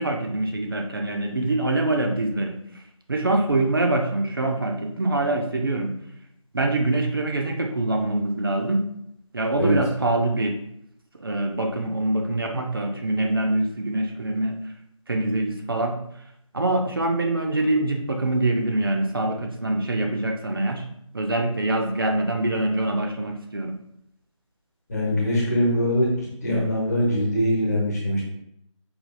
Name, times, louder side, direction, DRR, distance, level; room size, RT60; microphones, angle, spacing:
voice 1, 0.0-2.6 3.1-6.0 6.5-8.8 9.3-10.6 11.2-14.6 15.1-15.9 16.5-20.9 21.1-23.8, right 2 dB, 45° right, 3 dB, 0.5 m, -24 dB
voice 2, 24.9-26.1 26.4-28.2, equal, 30° left, -5 dB, 1.1 m, -22 dB
4.8 x 2.4 x 2.6 m, 0.74 s
figure-of-eight pair, 165°, 17 cm